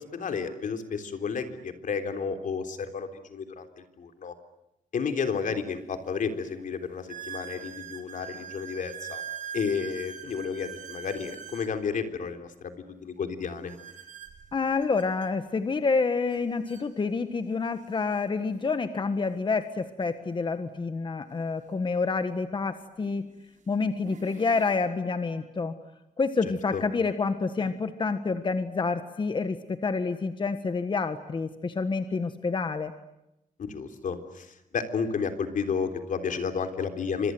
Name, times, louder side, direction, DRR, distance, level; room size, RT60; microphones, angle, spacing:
voice 1, 0.0-4.3 4.9-9.2 9.5-13.7 26.7-26.8 27.6-27.7 33.6-37.3, left 5 dB, 70° left, 7 dB, 3.6 m, -32 dB
sound 1, 5.4-5.5 6.1-6.2 7.1-11.7 13.7-15.3 16.3-16.4 16.7-16.9 17.6-17.7 20.0-20.1 22.1-22.2 23.0-23.3 23.8-24.8, right 8 dB, 65° right, 4.3 m, -42 dB
voice 2, 14.5-23.2 23.7-25.7 26.2-32.9, left 4 dB, 35° left, 9 dB, 1.5 m, -28 dB
29.0 x 26.0 x 7.9 m, 0.88 s
wide cardioid pair, 135°, 14 cm